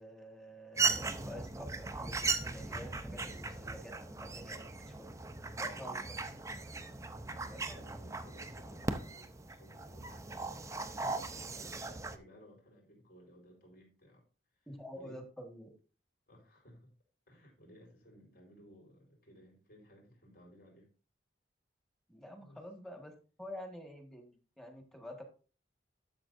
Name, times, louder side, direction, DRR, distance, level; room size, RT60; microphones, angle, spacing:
voice 1, 0.0-5.1 5.6-6.2 7.4-7.9 14.7-15.7 22.1-25.2, left 1 dB, ahead, 3 dB, 1.6 m, -49 dB
sound 1, 0.8-12.2, right 3 dB, 15° right, 0.6 m, -38 dB
voice 2, 5.7-6.1 7.3-14.2 14.5-15.2 16.3-16.9 17.3-20.9 22.4-22.6, equal, 55° left, -1 dB, 4.4 m, -59 dB
12.0 x 7.1 x 2.6 m, 0.36 s
head